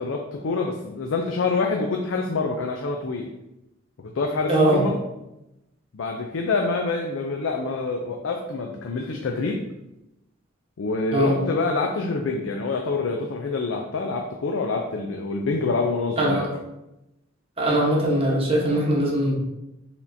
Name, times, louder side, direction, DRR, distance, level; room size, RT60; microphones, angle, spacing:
voice 1, 0.0-3.3 4.0-5.0 5.9-9.6 10.8-16.4, left 3 dB, 75° left, 2 dB, 0.4 m, -26 dB
voice 2, 4.5-4.8 11.1-11.3 16.2-16.4 17.6-19.4, right 1 dB, 30° right, -3 dB, 1.0 m, -21 dB
4.7 x 3.6 x 2.6 m, 0.92 s
head